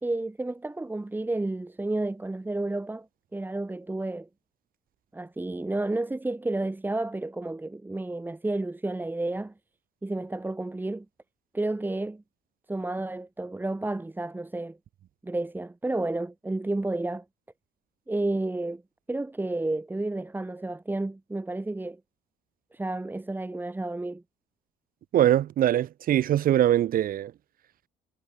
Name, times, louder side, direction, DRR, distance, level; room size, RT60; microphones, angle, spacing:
voice 1, 0.0-3.1 3.3-4.3 5.1-9.5 10.0-11.1 11.5-12.2 12.7-14.8 15.2-17.2 18.1-18.8 19.1-22.0 22.7-24.2, right 2 dB, 10° right, 2.4 m, -31 dB
voice 2, 25.1-27.3, right 11 dB, 55° right, 1.4 m, -22 dB
cardioid pair, 110°, 17 cm